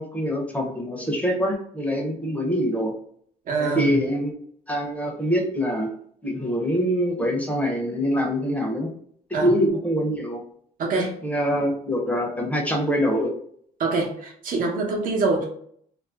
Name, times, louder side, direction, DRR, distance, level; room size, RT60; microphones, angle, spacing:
voice 1, 0.0-3.0 3.6-4.3 4.7-5.9 6.2-8.9 9.3-10.4 10.9-13.3, equal, 10° left, 0 dB, 0.8 m, -24 dB
voice 2, 3.4-4.0 9.3-9.5 10.8-11.1 13.8-15.4, right 3 dB, 55° right, -1 dB, 1.0 m, -25 dB
2.5 x 2.1 x 3.4 m, 0.63 s
cardioid pair, 110°, 17 cm